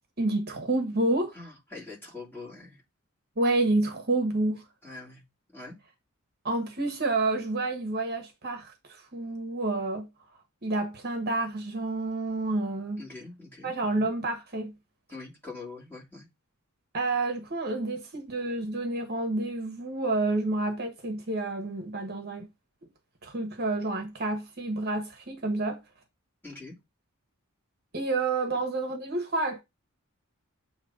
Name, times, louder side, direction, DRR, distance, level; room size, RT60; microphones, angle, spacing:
voice 1, 0.2-1.4 3.4-4.6 6.4-10.1 10.6-13.0 13.6-14.7 16.9-22.5 23.2-25.8 27.9-29.6, right 2 dB, 45° right, 1.2 m, -29 dB
voice 2, 1.3-2.8 4.8-5.2 5.5-5.8 13.0-13.7 15.1-16.3 26.4-26.7, left 3 dB, 10° left, 3.0 m, -43 dB
8.3 x 3.0 x 5.1 m
head